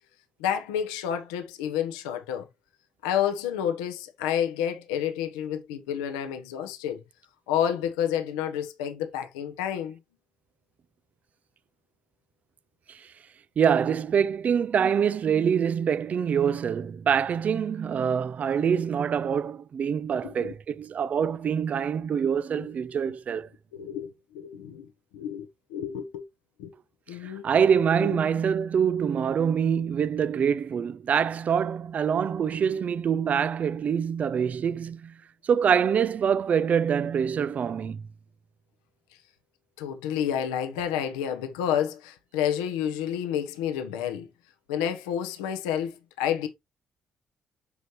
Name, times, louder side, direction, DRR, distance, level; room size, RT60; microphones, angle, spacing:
voice 1, 0.4-2.5 3.0-7.0 7.5-10.0 20.2-20.5 22.6-22.7 23.7-24.9 25.1-26.2 26.6-26.7 27.1-27.4 28.0-28.2 39.8-44.3 44.7-46.5, left 9 dB, 85° left, 1.0 m, -30 dB
voice 2, 13.6-23.5 27.2-35.1 35.4-38.0, right 7 dB, 50° right, 0.5 m, -25 dB
8.4 x 5.3 x 3.1 m
hypercardioid pair, 45°, 3 cm